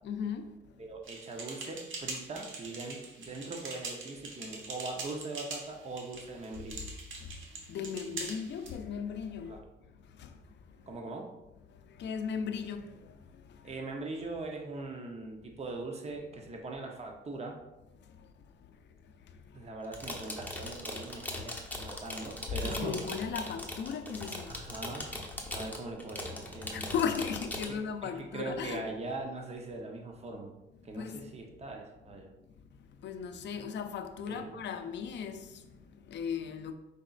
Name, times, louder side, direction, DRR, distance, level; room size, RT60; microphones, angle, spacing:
voice 1, 0.0-0.8 7.1-9.6 10.0-10.9 11.7-13.8 18.0-18.8 19.0-19.7 22.6-24.6 25.4-25.6 26.7-28.9 30.9-31.4 32.6-36.7, left 6 dB, 65° left, 0.5 m, -38 dB
voice 2, 0.8-6.8 9.5-9.6 10.9-11.3 13.6-17.6 19.5-23.0 24.5-25.1 25.5-26.9 27.7-30.5 30.8-32.3 34.3-34.5, right 2 dB, 30° right, 0.8 m, -41 dB
sound 1, 1.0-8.7, right 3 dB, 75° right, 1.1 m, -43 dB
sound 2, 19.8-27.7, left 1 dB, 10° left, 0.9 m, -40 dB
5.0 x 4.1 x 2.4 m
cardioid pair, 90°, 20 cm